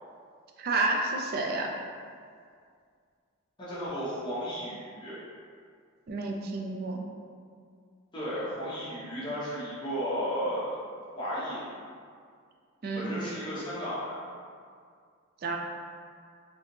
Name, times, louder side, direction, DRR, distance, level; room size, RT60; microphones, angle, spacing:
voice 1, 0.6-1.7 6.1-7.0 12.8-13.1 15.4-15.6, right 2 dB, 45° right, 1 dB, 0.3 m, -30 dB
voice 2, 3.6-5.2 8.1-10.8 11.1-11.6 13.0-14.2, equal, 20° left, -10 dB, 0.9 m, -34 dB
3.3 x 2.8 x 2.7 m, 2.2 s
head